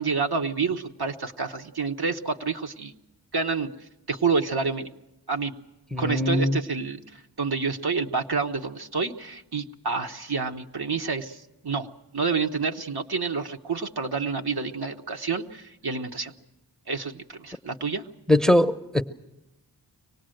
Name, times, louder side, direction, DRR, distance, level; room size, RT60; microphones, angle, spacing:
voice 1, 0.0-2.9 3.3-3.7 4.1-4.9 5.3-5.5 6.0-11.9 12.1-16.3 16.9-18.0, right 4 dB, 65° right, 1.1 m, -28 dB
voice 2, 5.9-6.6 18.3-19.0, left 1 dB, ahead, 0.7 m, -21 dB
24.5 x 18.5 x 7.8 m
wide cardioid pair, 50°, 41 cm